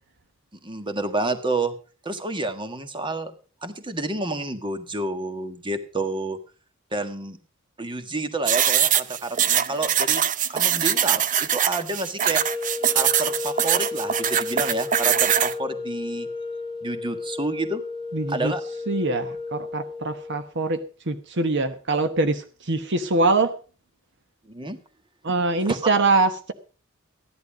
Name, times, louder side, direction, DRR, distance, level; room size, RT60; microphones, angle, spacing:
voice 1, 0.6-1.7 2.0-3.3 3.6-6.4 6.9-7.4 7.8-10.2 10.5-12.4 12.9-16.3 16.8-17.8 18.3-18.6 24.5-24.8 25.6-25.8, right 2 dB, 25° right, 8 dB, 1.5 m, -29 dB
sound 1, 8.5-15.5, right 9 dB, 40° right, 0.6 m, -22 dB
sound 2, 12.3-20.5, left 3 dB, 25° left, 1.6 m, -33 dB
voice 2, 18.1-18.5 18.9-23.5 25.2-26.5, right 3 dB, 60° right, 9 dB, 1.1 m, -23 dB
15.0 x 11.0 x 5.0 m, 0.37 s
head